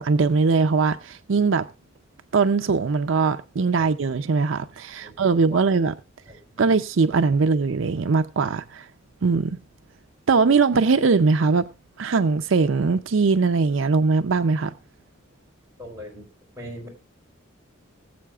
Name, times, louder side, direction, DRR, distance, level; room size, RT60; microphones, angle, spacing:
voice 1, 0.0-1.7 2.3-5.9 6.6-8.9 9.2-9.6 10.3-11.7 12.0-14.7, right 4 dB, 70° right, 0.5 m, -21 dB
voice 2, 15.8-16.2 16.6-16.9, equal, 15° right, 4.4 m, -38 dB
20.5 x 7.6 x 2.3 m
head